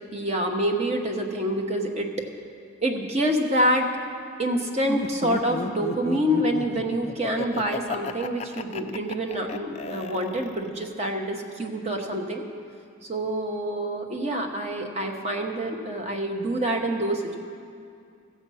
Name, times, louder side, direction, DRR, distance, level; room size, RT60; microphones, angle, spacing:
voice 1, 0.1-2.1 2.8-3.9 4.4-12.4 13.0-17.4, right 1 dB, 30° right, 3 dB, 1.0 m, -27 dB
Laughter, 4.9-10.8, left 4 dB, 30° left, 0.3 m, -34 dB
15.0 x 7.3 x 5.5 m, 2.3 s
head